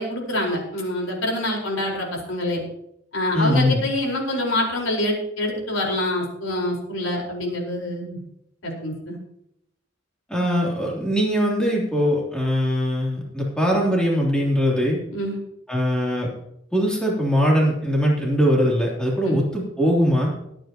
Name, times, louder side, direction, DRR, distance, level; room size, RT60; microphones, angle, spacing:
voice 1, 0.0-2.6 3.1-8.2 8.6-9.2 15.1-15.4 19.2-19.4, left 1 dB, 85° left, -1 dB, 4.5 m, -26 dB
voice 2, 3.3-3.9 10.3-15.0 15.7-16.3 16.7-20.3, equal, 5° left, -3 dB, 3.1 m, -21 dB
23.0 x 9.0 x 3.0 m, 0.77 s
head